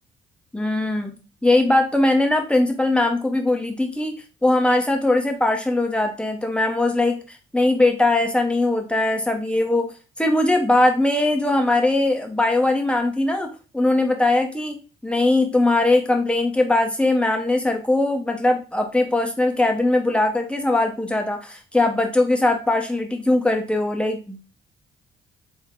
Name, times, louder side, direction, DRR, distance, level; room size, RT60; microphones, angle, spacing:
voice 1, 0.5-1.1 1.4-4.1 4.4-9.9 10.2-13.5 13.7-14.8 15.0-24.4, left 2 dB, 5° left, 3 dB, 0.8 m, -20 dB
3.5 x 2.1 x 3.7 m, 0.33 s
cardioid pair, 90°, 20 cm